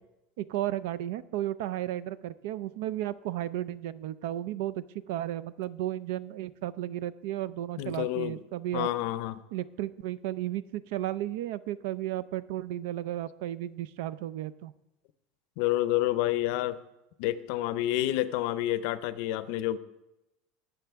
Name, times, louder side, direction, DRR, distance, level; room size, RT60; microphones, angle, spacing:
voice 1, 0.4-8.9 9.5-14.7, right 13 dB, 70° right, 17 dB, 0.5 m, -34 dB
voice 2, 7.8-8.4 8.7-9.4 15.6-16.8 17.2-19.8, left 14 dB, 55° left, 14 dB, 0.6 m, -29 dB
19.5 x 6.8 x 3.5 m, 0.93 s
cardioid pair, 170°, 0 cm